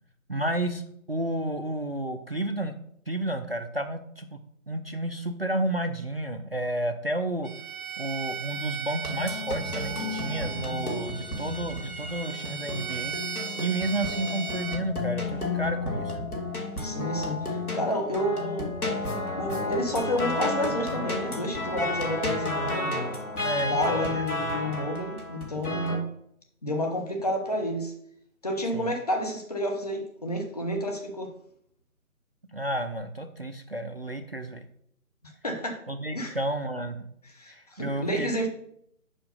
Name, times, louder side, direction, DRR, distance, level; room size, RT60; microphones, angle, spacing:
voice 1, 0.3-0.8 1.1-2.8 3.1-4.4 4.7-7.5 8.0-13.2 13.6-16.2 23.4-24.3 24.6-24.8 28.7-28.9 32.5-34.7 35.9-37.1 37.5-38.5, right 1 dB, 45° right, 7 dB, 0.4 m, -31 dB
Bowed string instrument, 7.4-14.8, right 7 dB, 75° right, 1.0 m, -37 dB
sound 1, 9.0-26.0, left 2 dB, 80° left, 2.2 m, -32 dB
voice 2, 16.8-18.8 19.3-23.1 23.5-26.1 26.6-27.9 28.4-31.3 35.4-35.8 36.1-36.4 37.2-38.5, equal, 25° left, 2 dB, 0.8 m, -30 dB
5.0 x 5.0 x 5.5 m, 0.70 s
figure-of-eight pair, 155°, 44 cm